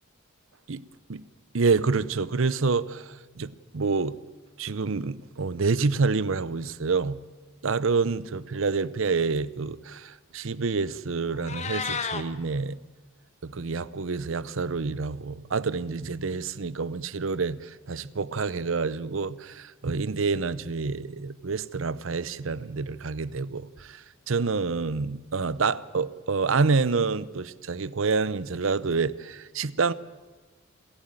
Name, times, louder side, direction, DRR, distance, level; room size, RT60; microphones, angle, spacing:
voice 1, 1.5-4.2 4.6-7.2 7.6-12.8 13.4-29.9, right 4 dB, 65° right, 18 dB, 0.7 m, -28 dB
Meow, 11.3-12.2, left 6 dB, 35° left, 1.1 m, -32 dB
28.0 x 11.5 x 8.9 m, 1.3 s
head